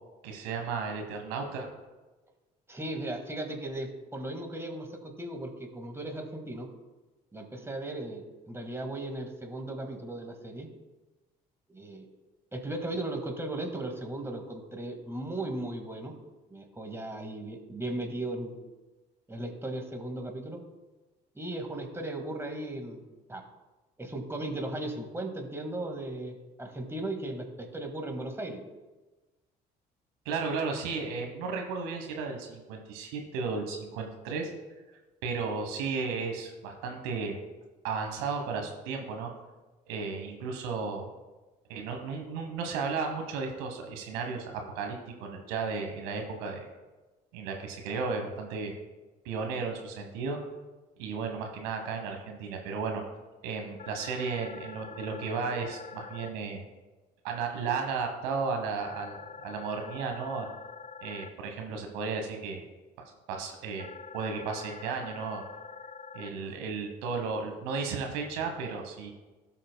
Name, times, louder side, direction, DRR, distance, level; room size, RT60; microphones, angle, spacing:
voice 1, 0.2-1.7 30.2-34.5 35.2-37.4 37.8-39.3 39.9-41.1 41.7-46.7 47.3-48.7 49.2-50.4 51.0-53.0 53.4-56.6 57.2-60.5 61.0-62.6 63.0-63.9 64.1-65.4 66.1-69.1, right 4 dB, 75° right, 4 dB, 1.3 m, -34 dB
voice 2, 2.7-6.7 7.3-10.7 11.7-12.1 12.5-16.1 16.5-18.5 19.3-20.6 21.4-23.4 24.0-28.6, right 1 dB, 10° right, 3 dB, 1.8 m, -37 dB
sound 1, 53.8-56.3 58.8-61.3 63.8-66.3, left 5 dB, 40° left, 0.5 m, -45 dB
17.0 x 5.7 x 2.2 m, 1.2 s
hypercardioid pair, 55°, 21 cm